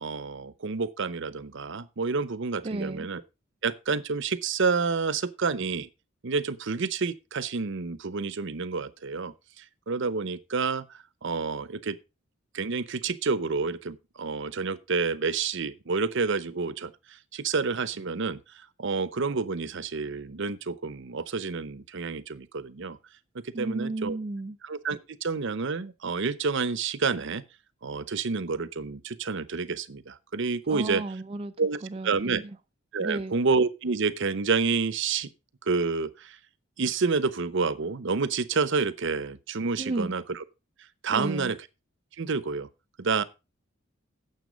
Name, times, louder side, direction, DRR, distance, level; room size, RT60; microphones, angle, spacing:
voice 1, 0.0-3.2 3.6-5.9 6.2-12.0 12.5-23.0 23.3-24.2 24.6-27.4 27.8-31.0 31.6-32.4 32.9-35.3 35.7-36.4 36.8-40.4 41.0-41.6 42.2-42.7 43.0-43.2, right 4 dB, 65° right, 0.8 m, -29 dB
voice 2, 2.6-3.1 23.5-24.6 30.7-31.5 31.8-32.6 33.0-33.4 39.8-40.1 41.1-41.5, right 2 dB, 30° right, 0.4 m, -33 dB
9.4 x 7.2 x 5.1 m
head